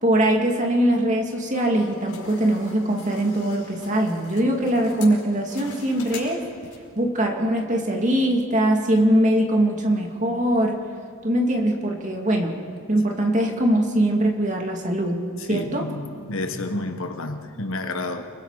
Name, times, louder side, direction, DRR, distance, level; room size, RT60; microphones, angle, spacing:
voice 1, 0.0-6.4 7.0-10.8 11.2-12.6 12.9-15.9, right 1 dB, 35° right, 1 dB, 2.5 m, -22 dB
sound 1, 1.5-7.0, left 5 dB, 80° left, 5.1 m, -43 dB
voice 2, 15.5-18.3, left 2 dB, 65° left, 6 dB, 1.5 m, -30 dB
30.0 x 21.0 x 5.0 m, 2.4 s
head